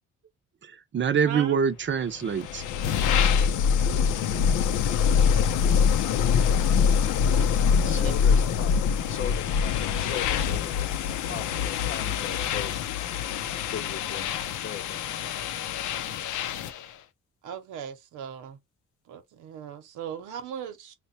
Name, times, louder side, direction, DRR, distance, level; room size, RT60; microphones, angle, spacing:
voice 1, 0.6-2.6 11.3-11.4, right 7 dB, 40° right, 0.6 m, -25 dB
voice 2, 1.2-1.6 7.6-8.1 17.4-18.6 19.1-20.9, right 8 dB, 80° right, 0.8 m, -38 dB
sound 1, 2.2-16.8, left 7 dB, 80° left, 0.6 m, -24 dB
voice 3, 7.8-8.7 9.0-12.7 13.7-15.0, left 7 dB, 40° left, 0.8 m, -39 dB
3.4 x 2.2 x 4.0 m
cardioid pair, 90°, 30 cm